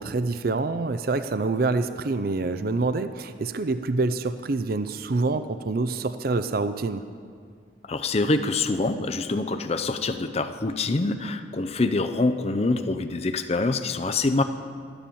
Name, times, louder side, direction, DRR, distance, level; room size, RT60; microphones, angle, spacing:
voice 1, 0.0-7.0, right 3 dB, 50° right, 11 dB, 0.5 m, -26 dB
voice 2, 7.9-14.4, left 3 dB, 35° left, 8 dB, 0.5 m, -25 dB
13.0 x 10.0 x 7.0 m, 2.1 s
head